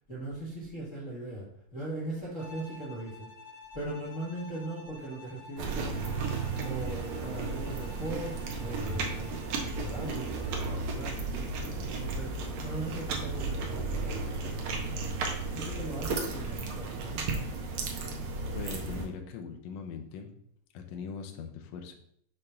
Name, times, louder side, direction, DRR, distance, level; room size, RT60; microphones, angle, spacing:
voice 1, 0.1-3.3 3.7-11.5 11.9-12.4 12.6-17.2, right 1 dB, 50° left, -7 dB, 0.9 m, -40 dB
Bowed string instrument, 2.4-10.7, left 2 dB, 30° right, 0.7 m, -51 dB
sound 1, 5.6-19.1, right 3 dB, 70° right, 1.8 m, -34 dB
voice 2, 18.5-20.3 20.7-21.9, left 6 dB, 75° left, 4 dB, 1.5 m, -41 dB
6.7 x 2.5 x 5.5 m, 0.68 s
omnidirectional pair, 3.8 m